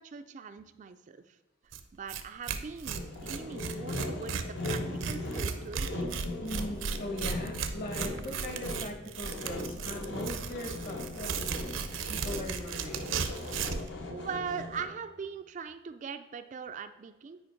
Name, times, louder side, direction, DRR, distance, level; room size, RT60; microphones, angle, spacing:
voice 1, 0.0-1.4 1.9-4.8 5.0-6.1 14.1-17.4, right 6 dB, 40° right, 9 dB, 0.3 m, -41 dB
Tearing, 1.7-1.8 2.1-2.2 2.5-13.9, right 5 dB, 75° right, 0.6 m, -35 dB
Sawing, 3.0-15.0, left 2 dB, 65° left, 1.1 m, -39 dB
voice 2, 6.4-11.4 12.0-13.1, left 1 dB, 45° left, 3 dB, 1.4 m, -40 dB
8.7 x 5.1 x 4.4 m, 1.1 s
head